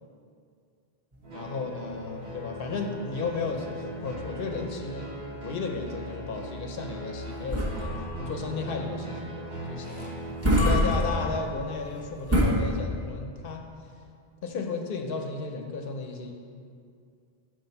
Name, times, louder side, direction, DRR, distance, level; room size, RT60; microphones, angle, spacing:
sound 1, 1.1-12.4, equal, 15° right, 0.9 m, -30 dB
sound 2, 1.2-11.4, equal, 70° right, 1.9 m, -39 dB
voice 1, 1.3-5.1 5.4-7.9 8.2-10.1 10.5-13.7 14.4-16.3, left 4 dB, 65° left, 3 dB, 0.8 m, -34 dB
5.7 x 4.9 x 5.2 m, 2.3 s
omnidirectional pair, 1.0 m